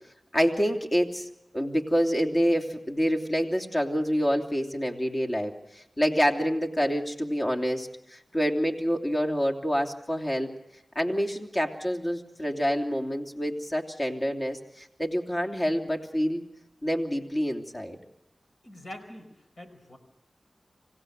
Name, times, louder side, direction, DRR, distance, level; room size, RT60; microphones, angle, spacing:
voice 1, 0.3-1.3 1.5-10.5 10.9-16.4 16.8-18.0, equal, 35° left, 2 dB, 3.1 m, -27 dB
voice 2, 18.6-19.3 19.6-20.0, left 1 dB, 70° left, 5 dB, 4.7 m, -43 dB
26.5 x 16.0 x 6.6 m, 0.84 s
cardioid pair, 40°, 0 cm